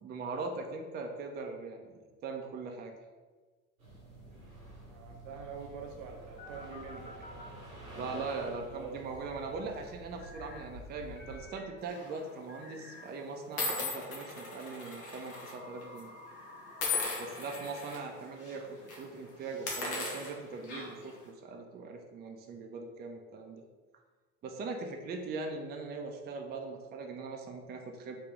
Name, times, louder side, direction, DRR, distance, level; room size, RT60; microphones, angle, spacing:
voice 1, 0.0-2.9 8.0-16.1 17.2-23.6 24.4-28.2, right 3 dB, 25° right, 3 dB, 0.4 m, -41 dB
sound 1, 3.8-11.4, right 1 dB, 85° right, 0.9 m, -49 dB
voice 2, 4.8-7.3 7.9-9.0, right 5 dB, 70° right, 2 dB, 0.6 m, -45 dB
sound 2, 6.4-7.6 10.2-10.6 11.2-13.3 14.2-17.7, left 2 dB, 20° left, 0.7 m, -52 dB
sound 3, 11.9-12.2 12.9-13.0 13.6-15.5 15.8-16.0 16.8-18.0 18.4-18.6 18.8-19.0 19.5-21.1, left 3 dB, 70° left, 0.9 m, -37 dB
3.1 x 2.8 x 3.4 m, 1.3 s
figure-of-eight pair, 50°, 41 cm